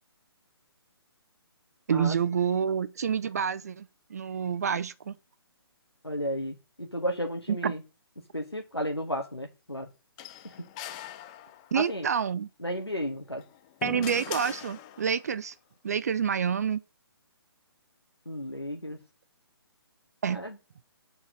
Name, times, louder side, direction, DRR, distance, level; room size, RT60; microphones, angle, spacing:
voice 1, 1.9-5.2 7.5-7.7 11.7-12.5 13.8-15.5 15.8-16.8 20.2-20.4, right 7 dB, 40° right, 0.4 m, -28 dB
voice 2, 6.0-7.8 8.3-9.9 10.4-10.5 11.7-12.1 12.6-13.4 18.2-19.0 20.3-20.6, equal, 90° left, 1.6 m, -33 dB
sound 1, 10.2-11.9 13.3-15.3, left 12 dB, 15° left, 0.5 m, -41 dB
7.0 x 4.8 x 6.5 m
figure-of-eight pair, 135°, 13 cm